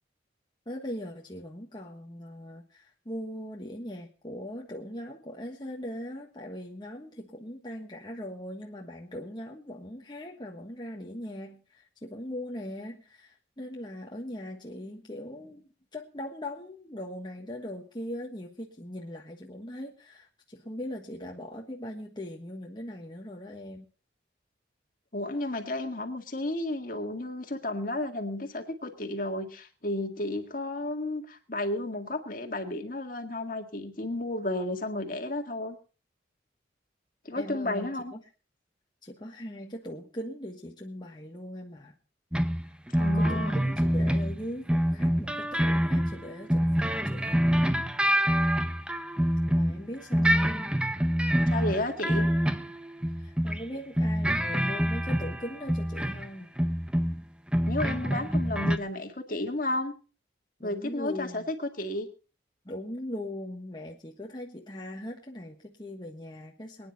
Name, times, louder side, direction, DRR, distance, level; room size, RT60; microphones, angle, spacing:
voice 1, 0.6-23.9 37.3-38.2 39.0-41.9 42.7-47.4 49.5-50.8 53.2-56.5 60.6-61.5 62.6-66.9, left 1 dB, 25° left, -1 dB, 1.4 m, -40 dB
voice 2, 25.1-35.8 37.3-38.1 43.0-43.6 51.5-52.3 57.6-60.0 60.6-62.1, left 1 dB, 50° left, 5 dB, 1.9 m, -32 dB
sound 1, 42.3-49.8 50.1-53.6 54.0-56.3 56.6-57.2 57.5-58.8, equal, 5° right, 0.7 m, -26 dB
23.5 x 9.8 x 4.1 m, 0.35 s
head